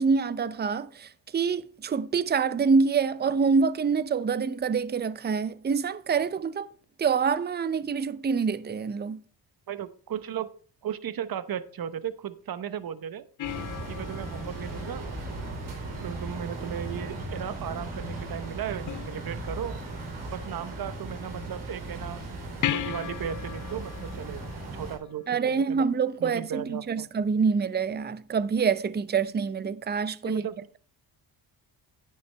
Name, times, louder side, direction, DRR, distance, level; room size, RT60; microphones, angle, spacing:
voice 1, 0.0-6.7 7.0-9.2 25.3-30.4, right 5 dB, 20° right, 0.6 m, -26 dB
voice 2, 9.7-10.5 10.8-13.2 13.9-15.1 16.0-19.7 20.3-22.2 22.7-25.8 26.2-27.1 30.2-30.6, right 9 dB, 50° right, 0.9 m, -36 dB
sound 1, 13.4-16.0 18.9-19.8 22.6-25.5 28.6-28.7, left 13 dB, 45° left, 0.4 m, -37 dB
sound 2, 13.4-25.0, right 2 dB, 85° right, 4.5 m, -37 dB
10.0 x 9.5 x 3.3 m
cardioid pair, 80°, 46 cm